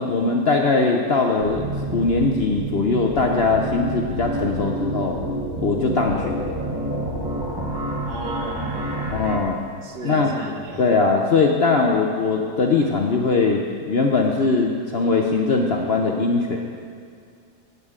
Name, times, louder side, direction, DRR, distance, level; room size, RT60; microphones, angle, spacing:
voice 1, 0.0-1.7 1.9-5.2 5.6-6.5 9.1-9.6 10.0-10.4 10.8-16.8, left 4 dB, 55° left, 1 dB, 0.7 m, -21 dB
sound 1, 1.4-9.4, right 1 dB, 20° right, 0.8 m, -28 dB
voice 2, 8.1-9.2 9.8-10.8, right 2 dB, 75° right, 1 dB, 1.8 m, -34 dB
16.0 x 8.5 x 3.7 m, 2.2 s
omnidirectional pair, 1.8 m